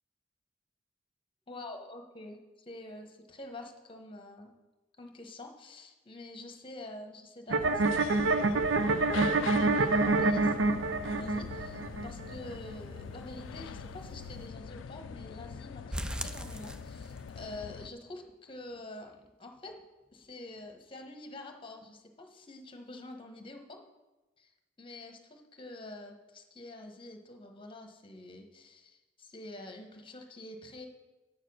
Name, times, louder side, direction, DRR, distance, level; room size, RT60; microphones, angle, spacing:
voice 1, 1.5-4.5 5.0-8.7 9.0-19.8 20.1-23.8 24.4-30.9, left 2 dB, 30° left, 4 dB, 1.2 m, -47 dB
sound 1, 7.5-14.4, right 3 dB, 80° right, 0.5 m, -28 dB
sound 2, 7.6-17.9, left 6 dB, 90° left, 0.4 m, -43 dB
sound 3, 15.9-17.4 17.8-17.9 18.3-18.4 18.8-18.9, right 1 dB, 5° right, 0.4 m, -39 dB
8.9 x 6.7 x 6.3 m, 1.1 s
head